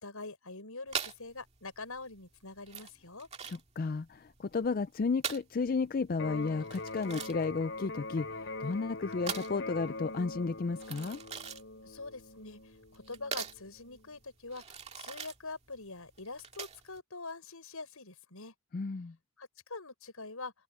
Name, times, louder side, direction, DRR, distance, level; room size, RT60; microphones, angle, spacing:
voice 1, 0.0-3.3 11.8-12.6 12.9-14.6 15.0-18.5 19.4-20.5, left 3 dB, 85° left, 6.0 m, -44 dB
sound 1, 0.9-17.0, right 7 dB, 30° right, 2.1 m, -43 dB
voice 2, 3.5-11.2 18.7-19.1, left 4 dB, 40° left, 0.4 m, -33 dB
Electric guitar, 6.1-14.1, left 2 dB, 60° left, 5.7 m, -43 dB
head